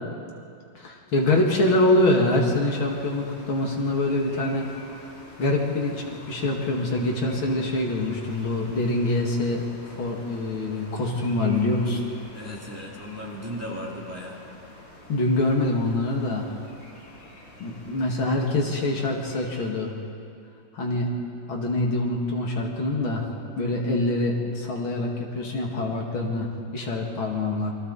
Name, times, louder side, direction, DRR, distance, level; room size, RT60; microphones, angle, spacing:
voice 1, 0.7-4.7 5.4-9.6 10.0-12.0 15.1-16.5 17.6-19.9 20.7-21.1 21.5-23.3 23.6-27.7, left 2 dB, 70° left, 0 dB, 3.0 m, -25 dB
sound 1, 1.1-19.7, left 1 dB, 90° left, 4.1 m, -47 dB
voice 2, 12.3-14.4, equal, 5° right, -3 dB, 2.4 m, -36 dB
28.5 x 23.5 x 4.2 m, 2.5 s
omnidirectional pair, 2.3 m